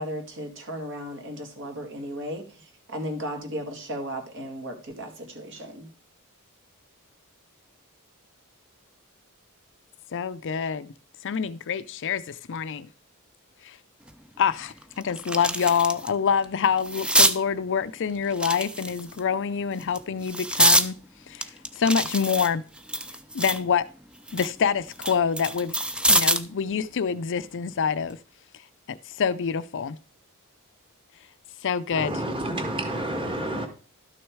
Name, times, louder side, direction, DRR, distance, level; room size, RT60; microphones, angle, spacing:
voice 1, 0.0-5.9, equal, 55° right, 2.3 m, -35 dB
voice 2, 10.1-10.9 11.2-12.9 13.6-13.8 14.4-21.0 21.3-22.6 23.3-23.8 24.3-25.7 26.1-28.2 28.9-30.0 31.6-32.2, left 6 dB, 55° left, 0.5 m, -26 dB
sound 1, 14.1-14.2 14.7-16.1 16.4-17.4 18.3-19.2 19.8-20.9 21.4-23.7 24.1-26.5 27.9-28.1, right 1 dB, 5° right, 0.5 m, -25 dB
voice 3, 31.9-33.7, right 1 dB, 25° right, 1.8 m, -29 dB
12.0 x 6.3 x 4.7 m
head